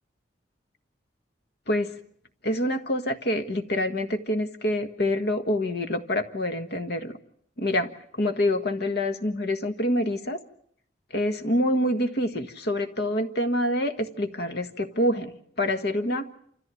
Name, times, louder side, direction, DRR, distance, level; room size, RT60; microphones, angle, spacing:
voice 1, 2.4-7.1 7.6-7.9 8.2-10.4 11.1-15.3 15.6-16.3, left 1 dB, 60° left, 8 dB, 1.6 m, -26 dB
28.0 x 14.0 x 9.1 m, 0.66 s
head